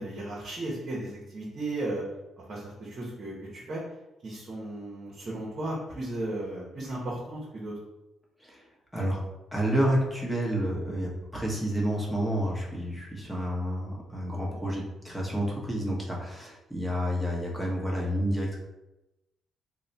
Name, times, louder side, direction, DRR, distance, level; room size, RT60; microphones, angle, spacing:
voice 1, 0.0-2.0 2.5-3.8 4.2-7.7, right 2 dB, 45° right, -5 dB, 0.9 m, -35 dB
voice 2, 9.5-18.6, equal, 5° left, -3 dB, 1.0 m, -29 dB
3.1 x 2.1 x 4.0 m, 0.97 s
cardioid pair, 90°, 0 cm